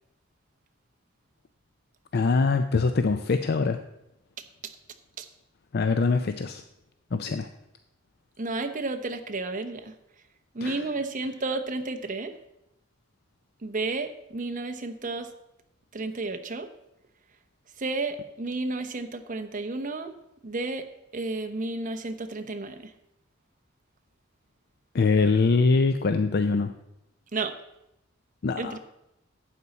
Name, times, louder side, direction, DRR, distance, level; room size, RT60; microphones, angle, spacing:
voice 1, 2.1-3.8 5.7-6.6 7.1-7.5 10.6-10.9 24.9-26.7 28.4-28.8, left 4 dB, 55° left, 9 dB, 0.5 m, -23 dB
voice 2, 8.4-9.9 10.5-12.3 13.6-15.3 15.9-16.7 17.8-20.1 20.4-20.8 21.1-22.8 27.3-27.5 28.6-28.8, right 3 dB, 40° right, 7 dB, 0.8 m, -32 dB
11.5 x 8.2 x 4.1 m, 0.85 s
head